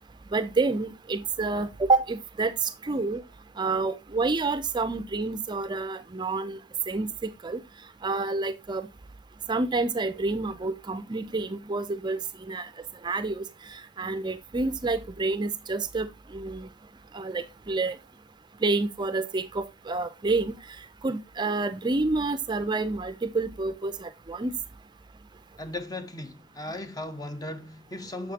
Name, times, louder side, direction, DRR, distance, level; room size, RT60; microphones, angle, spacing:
voice 1, 0.3-3.2 3.6-6.6 6.9-7.1 7.4-7.6 8.0-8.9 9.5-12.2 12.5-12.7 13.0-16.7 17.1-18.0 18.6-20.6 21.0-24.5, right 3 dB, 25° right, 0.5 m, -28 dB
voice 2, 25.6-28.3, left 1 dB, 20° left, 0.7 m, -37 dB
7.1 x 6.6 x 2.8 m
head